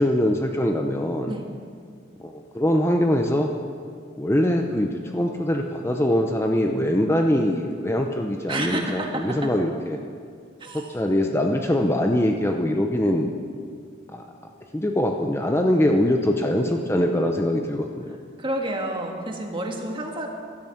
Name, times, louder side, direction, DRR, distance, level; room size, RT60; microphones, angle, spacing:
voice 1, 0.0-1.3 2.2-3.5 4.2-10.0 10.7-13.3 14.1-14.2 14.7-18.2, left 1 dB, 15° left, 3 dB, 0.7 m, -23 dB
voice 2, 8.5-9.5 10.6-11.1 18.4-20.3, right 1 dB, 25° right, 2 dB, 1.7 m, -30 dB
15.5 x 12.5 x 5.9 m, 2.1 s
head